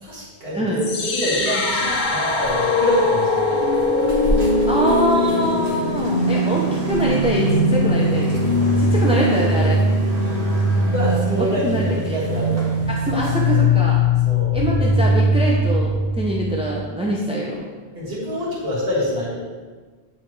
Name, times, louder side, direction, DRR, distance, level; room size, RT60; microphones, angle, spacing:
voice 1, 0.0-3.6 10.7-12.7 14.2-14.6 17.9-19.4, equal, 70° right, -8 dB, 1.8 m, -26 dB
sound 1, 0.8-16.8, left 1 dB, 55° left, 0.8 m, -20 dB
sound 2, 1.3-13.6, right 1 dB, 85° right, 1.2 m, -35 dB
voice 2, 4.5-8.4 8.8-9.8 11.4-12.2 12.9-14.0 14.5-17.6, right 1 dB, 10° right, -4 dB, 0.4 m, -24 dB
sound 3, 5.1-13.4, right 3 dB, 40° right, 1.7 m, -35 dB
9.0 x 3.3 x 3.1 m, 1.4 s
omnidirectional pair, 1.0 m